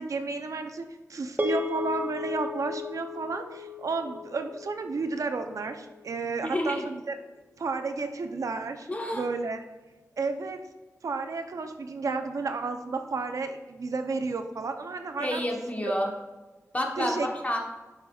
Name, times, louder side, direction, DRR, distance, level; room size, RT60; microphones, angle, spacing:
voice 1, 0.0-7.2 7.6-9.6 10.2-10.6 11.0-15.4 17.0-17.3, right 4 dB, 85° right, 6 dB, 0.6 m, -32 dB
sound 1, 1.4-5.9, left 3 dB, 35° right, 0.6 m, -35 dB
voice 2, 6.4-6.8 8.9-9.3 15.2-16.1 16.7-17.6, left 1 dB, 25° left, 1 dB, 1.1 m, -29 dB
9.7 x 5.8 x 2.4 m, 1.2 s
wide cardioid pair, 90°, 5 cm